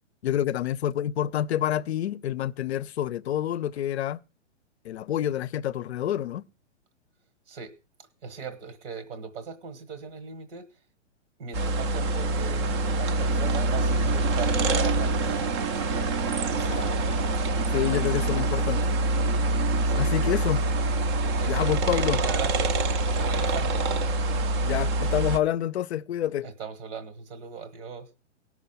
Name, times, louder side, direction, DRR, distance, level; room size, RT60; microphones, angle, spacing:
voice 1, 0.2-4.2 4.8-6.4 16.5-16.9 17.7-18.8 20.0-20.6 21.5-22.2 24.6-26.5, left 11 dB, 60° left, 0.5 m, -28 dB
voice 2, 8.2-10.7 11.4-15.5 19.8-20.1 21.4-22.8 23.2-23.9 26.4-28.1, right 6 dB, 70° right, 1.4 m, -39 dB
sound 1, 11.5-25.4, right 2 dB, 25° right, 0.5 m, -25 dB
17.5 x 6.3 x 5.5 m
hypercardioid pair, 150°, 36 cm